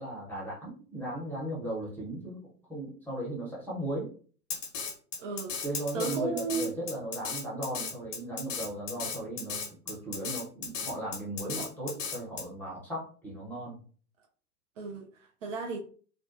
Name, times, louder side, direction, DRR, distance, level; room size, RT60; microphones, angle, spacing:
voice 1, 0.0-4.1 5.6-13.8, right 1 dB, 5° left, 0.7 m, -37 dB
Drum kit, 4.5-12.4, left 5 dB, 50° left, 0.8 m, -36 dB
voice 2, 5.2-5.6 5.9-6.7 14.8-15.8, right 5 dB, 50° right, 0.5 m, -34 dB
2.3 x 2.2 x 2.4 m
figure-of-eight pair, 100°, 49 cm